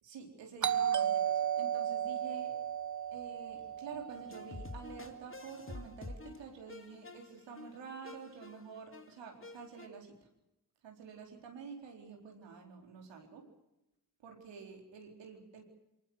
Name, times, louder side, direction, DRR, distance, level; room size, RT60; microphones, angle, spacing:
voice 1, 0.0-2.6 3.1-10.3 10.8-13.5 14.2-15.6, right 5 dB, 85° right, 2 dB, 4.3 m, -49 dB
Doorbell, 0.6-5.2, right 9 dB, 45° right, 1.1 m, -34 dB
sound 1, 4.1-9.9, left 3 dB, 30° left, 2.3 m, -49 dB
23.0 x 19.5 x 8.0 m, 0.92 s
supercardioid pair, 55°, 42 cm